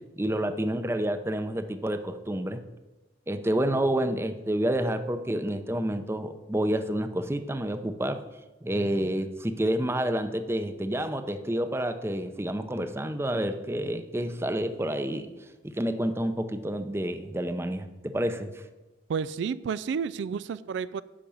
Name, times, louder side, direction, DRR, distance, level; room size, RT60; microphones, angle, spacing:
voice 1, 0.2-2.6 3.3-8.2 8.6-15.3 15.6-18.6, right 1 dB, 15° right, 0.6 m, -29 dB
voice 2, 19.1-21.0, right 6 dB, 90° right, 0.3 m, -31 dB
10.0 x 5.2 x 7.0 m
head